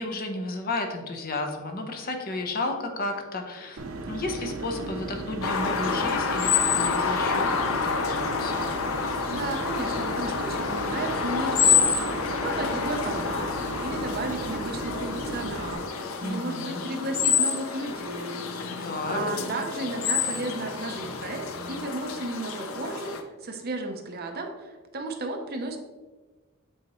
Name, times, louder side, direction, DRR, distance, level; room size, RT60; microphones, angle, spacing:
voice 1, 0.0-8.7 16.2-16.8 18.8-19.2, left 2 dB, 45° left, 3 dB, 0.8 m, -33 dB
sound 1, 3.8-15.7, right 2 dB, 85° right, 0.7 m, -36 dB
sound 2, 5.4-23.2, left 6 dB, 85° left, 0.6 m, -28 dB
voice 2, 9.3-18.4 18.8-23.1 23.4-25.8, right 2 dB, 50° right, 4 dB, 0.7 m, -34 dB
7.7 x 4.2 x 3.0 m, 1.3 s
head